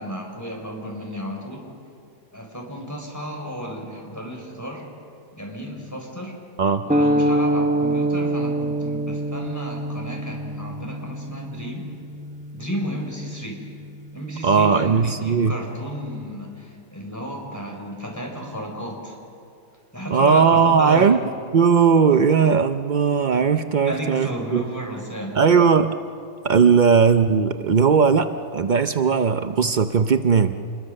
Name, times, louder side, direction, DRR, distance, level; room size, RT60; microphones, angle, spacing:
voice 1, 0.0-1.6 2.3-4.8 5.4-6.3 6.8-11.9 12.5-13.6 14.1-19.1 19.9-21.1 23.8-25.4, equal, 10° left, 0 dB, 4.3 m, -33 dB
sound 1, 6.9-15.3, right 1 dB, 5° right, 0.6 m, -26 dB
voice 2, 14.4-15.5 20.1-21.2 21.5-24.6 25.3-25.9 26.4-30.5, right 6 dB, 80° right, 9 dB, 0.4 m, -18 dB
27.5 x 21.5 x 6.5 m, 2.5 s
omnidirectional pair, 1.7 m